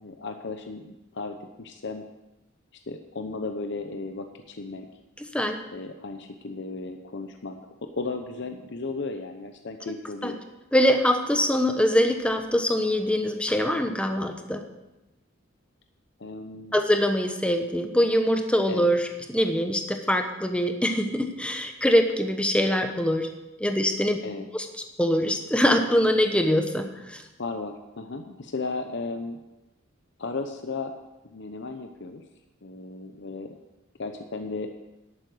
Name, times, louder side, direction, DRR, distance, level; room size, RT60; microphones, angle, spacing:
voice 1, 0.0-2.0 2.9-4.9 5.7-10.4 16.2-16.7 18.7-18.8 24.2-24.5 27.4-29.4 30.2-30.9 31.2-32.2 32.6-33.6 34.0-34.7, left 3 dB, 60° left, 6 dB, 0.8 m, -35 dB
voice 2, 5.2-5.6 10.2-10.3 10.7-14.6 16.7-23.3 23.6-24.2 24.5-24.7 25.0-27.2, equal, 5° left, 5 dB, 1.0 m, -23 dB
11.5 x 8.8 x 6.3 m, 0.99 s
head